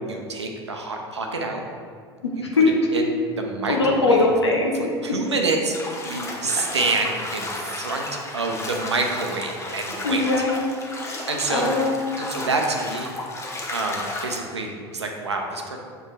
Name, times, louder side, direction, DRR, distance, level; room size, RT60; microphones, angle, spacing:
voice 1, 0.1-1.6 2.9-3.0 3.4-4.3 4.7-10.2 11.3-11.7 12.2-13.1 13.7-15.8, right 3 dB, 80° right, 2 dB, 0.7 m, -27 dB
voice 2, 2.2-2.7 3.7-4.8 10.0-10.8 11.1-12.2, left 3 dB, 80° left, -1 dB, 1.0 m, -21 dB
Bathtub (filling or washing), 5.7-14.4, left 2 dB, 20° left, 1.0 m, -33 dB
7.0 x 4.5 x 3.3 m, 2.1 s
figure-of-eight pair, 75°, 14 cm